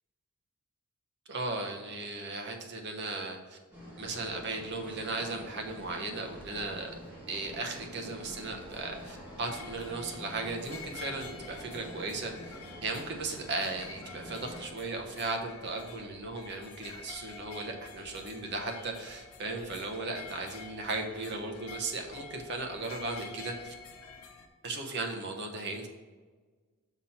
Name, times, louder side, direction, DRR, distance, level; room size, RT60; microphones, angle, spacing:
voice 1, 1.3-3.6 4.0-6.9 7.3-12.5 12.8-23.7 24.6-25.9, right 3 dB, 50° right, 2 dB, 1.0 m, -36 dB
sound 1, 3.7-14.7, equal, 5° right, 1.6 m, -47 dB
sound 2, 8.2-24.5, left 5 dB, 75° left, 0.8 m, -49 dB
6.0 x 4.3 x 5.7 m, 1.4 s
head